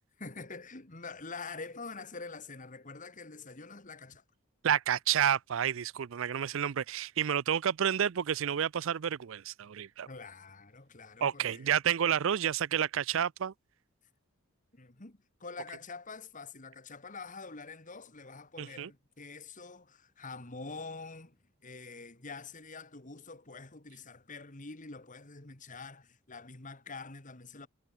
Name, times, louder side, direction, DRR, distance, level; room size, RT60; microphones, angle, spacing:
voice 1, 0.2-4.2 10.1-11.8 14.7-21.4 21.6-27.7, left 4 dB, 35° left, 2.0 m, -46 dB
voice 2, 4.6-10.1 11.2-13.5 18.6-18.9, right 9 dB, 65° right, 0.4 m, -30 dB
head